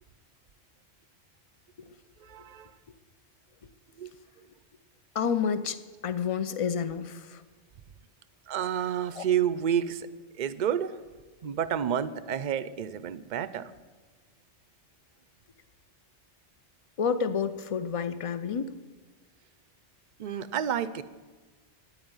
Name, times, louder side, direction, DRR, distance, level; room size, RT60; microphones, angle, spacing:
voice 1, 2.2-2.7 4.0-4.1 8.5-10.1 10.4-11.0 11.4-13.7 20.2-21.0, right 9 dB, 50° right, 14 dB, 0.6 m, -29 dB
voice 2, 5.1-7.4 9.2-9.3 17.0-18.7, left 6 dB, 40° left, 13 dB, 0.5 m, -29 dB
9.4 x 9.0 x 9.6 m, 1.3 s
omnidirectional pair, 1.2 m